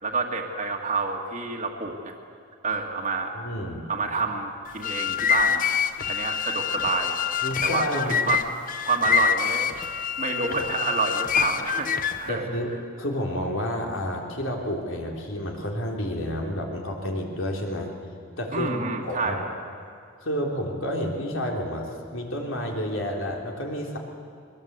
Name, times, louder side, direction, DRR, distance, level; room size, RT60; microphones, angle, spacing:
voice 1, 0.0-2.1 2.6-3.4 3.9-5.6 6.1-7.2 7.6-9.7 10.2-11.9 12.2-12.5 18.5-19.4, right 4 dB, 35° right, 0 dB, 1.9 m, -28 dB
voice 2, 3.3-3.9 7.4-8.2 12.3-12.7 13.0-17.9 18.4-19.4 20.2-24.0, equal, 65° left, 0 dB, 3.6 m, -30 dB
sound 1, 4.7-12.3, left 8 dB, 40° left, 0.7 m, -26 dB
22.5 x 21.5 x 8.1 m, 2.3 s
head